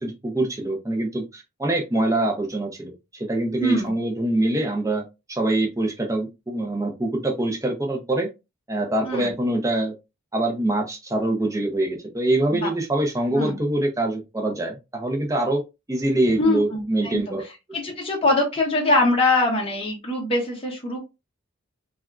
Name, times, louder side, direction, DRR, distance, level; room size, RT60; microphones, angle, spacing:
voice 1, 0.0-5.0 5.3-8.3 8.7-9.9 10.3-15.6 15.9-17.4, right 1 dB, 15° right, 2 dB, 0.6 m, -24 dB
voice 2, 3.6-3.9 9.0-9.3 12.6-12.7 13.4-13.6 16.4-17.2 17.7-21.0, left 2 dB, 25° left, -2 dB, 0.7 m, -22 dB
3.3 x 2.4 x 2.3 m, 0.25 s
head